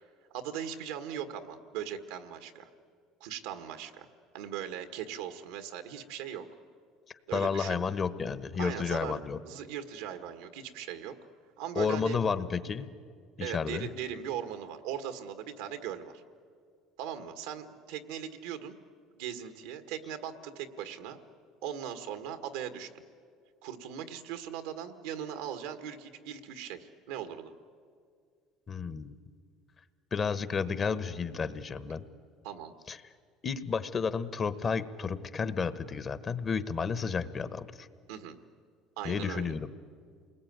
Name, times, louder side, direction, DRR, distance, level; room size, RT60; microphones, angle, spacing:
voice 1, 0.3-2.7 3.2-4.1 4.3-6.5 7.3-7.8 8.6-11.1 11.6-12.2 13.4-16.2 17.0-18.7 19.1-21.2 21.6-23.0 23.6-27.5 32.4-32.8 38.1-38.4 39.0-39.5, right 9 dB, 90° right, 8 dB, 1.7 m, -39 dB
voice 2, 7.3-9.4 11.8-12.9 13.4-13.9 28.7-29.2 30.1-32.1 32.9-33.0 33.4-37.9 39.0-39.7, left 5 dB, 35° left, 13 dB, 1.1 m, -31 dB
28.0 x 20.5 x 9.5 m, 2.2 s
supercardioid pair, 110°, 0 cm